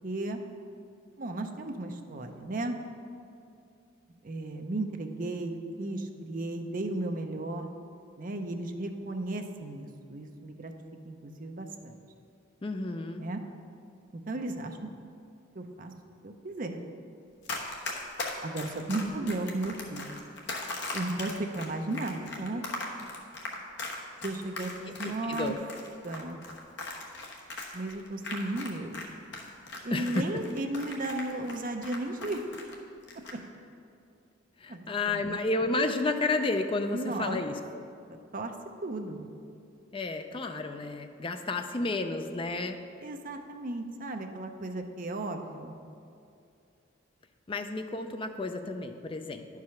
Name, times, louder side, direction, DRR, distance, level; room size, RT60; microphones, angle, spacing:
voice 1, 0.0-0.4 1.2-2.8 4.2-7.7 8.2-10.7 11.0-12.0 13.2-13.4 14.3-14.8 15.5-15.9 16.2-16.8 18.4-20.1 20.9-22.6 24.2-25.5 26.0-26.4 27.7-29.0 29.8-32.4 34.7-35.4 36.9-37.4 38.1-38.5 38.8-39.3 43.0-45.8, right 2 dB, 45° right, 5 dB, 0.6 m, -35 dB
voice 2, 12.6-13.3 19.0-19.3 24.9-25.6 29.9-30.3 34.6-37.9 39.9-42.8 47.5-49.5, left 2 dB, 25° left, 6 dB, 0.4 m, -31 dB
Run, 17.4-29.1 29.3-32.7 33.0-33.3, left 2 dB, 60° left, 1.1 m, -38 dB
10.5 x 4.8 x 5.7 m, 2.6 s
head